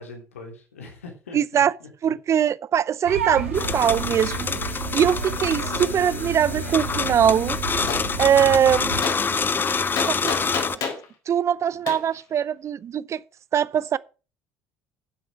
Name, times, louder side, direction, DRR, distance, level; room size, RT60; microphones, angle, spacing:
voice 1, 0.0-2.1, left 3 dB, 85° left, 3.3 m, -42 dB
voice 2, 1.3-1.7 2.0-4.5 4.9-7.6 8.2-9.2 10.1-10.8 11.3-13.2 13.5-14.0, right 9 dB, 45° right, 0.6 m, -22 dB
sound 1, 3.0-9.0, right 5 dB, 85° right, 1.8 m, -31 dB
sound 2, 3.5-10.8, left 5 dB, 30° left, 0.8 m, -27 dB
Gunshot gunfire, 7.9-8.1 9.0-9.2 10.0-11.0 11.9-12.0, left 6 dB, 60° left, 4.5 m, -27 dB
10.5 x 7.8 x 6.2 m
hypercardioid pair, 60°, 7 cm